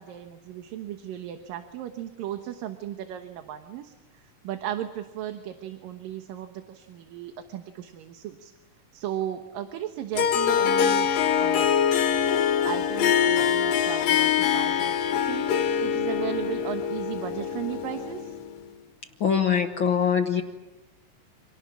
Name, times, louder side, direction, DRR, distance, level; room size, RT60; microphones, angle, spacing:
voice 1, 0.0-8.5 8.9-11.1 11.4-11.7 12.6-15.5 15.8-18.4, right 11 dB, 85° right, 7 dB, 2.9 m, -36 dB
Harp, 10.1-18.6, left 8 dB, 85° left, 3.3 m, -24 dB
voice 2, 19.2-20.4, left 7 dB, 65° left, 5 dB, 1.2 m, -23 dB
29.5 x 27.5 x 6.2 m, 1.1 s
omnidirectional pair, 3.9 m